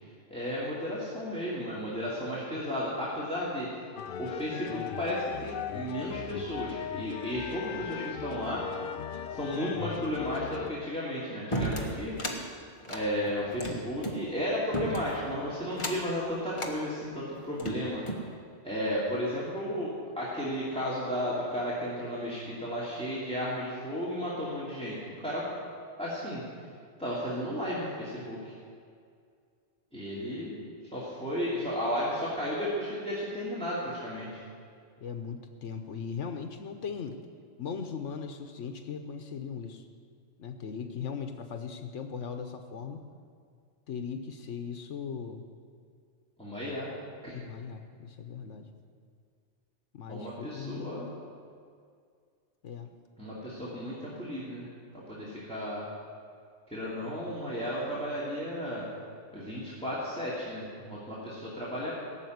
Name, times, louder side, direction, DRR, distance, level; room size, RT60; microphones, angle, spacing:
voice 1, 0.3-3.9 4.2-8.6 9.3-12.1 12.9-18.0 18.6-25.5 26.0-26.4 27.0-28.5 29.9-30.6 30.9-34.4 46.4-46.9 47.2-47.4 50.1-51.1 53.2-54.6 54.9-55.8 56.7-58.9 59.3-61.9, equal, 5° left, -8 dB, 2.8 m, -34 dB
sound 1, 4.0-10.7, left 9 dB, 60° left, 0.6 m, -38 dB
sound 2, 11.5-12.4 12.8-14.2 14.7-15.2 15.7-16.1 16.5-16.8 17.4-18.3, right 1 dB, 25° left, 1.6 m, -34 dB
voice 2, 35.0-37.2 37.6-39.8 40.4-43.0 43.9-45.5 47.3-48.7 49.9-51.1 52.6-52.9, left 6 dB, 80° left, 6 dB, 1.3 m, -38 dB
18.0 x 7.6 x 9.4 m, 2.2 s
omnidirectional pair, 1.2 m